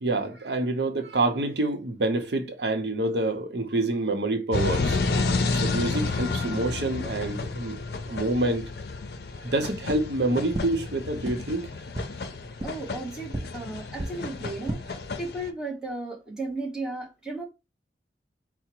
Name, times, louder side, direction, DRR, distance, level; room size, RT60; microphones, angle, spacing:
voice 1, 0.0-5.0 5.5-7.8 8.1-8.6 9.4-11.7, right 2 dB, 75° right, 0.8 m, -27 dB
sound 1, 4.5-15.5, left 3 dB, 65° left, 0.5 m, -31 dB
sound 2, 9.8-10.0 10.5-10.6 11.2-11.3 11.9-12.0 12.6-12.7 13.3-13.4 13.9-14.1 14.5-14.8, right 1 dB, 25° right, 0.7 m, -31 dB
voice 2, 12.6-17.5, right 2 dB, 5° right, 1.1 m, -35 dB
4.8 x 2.1 x 4.4 m
head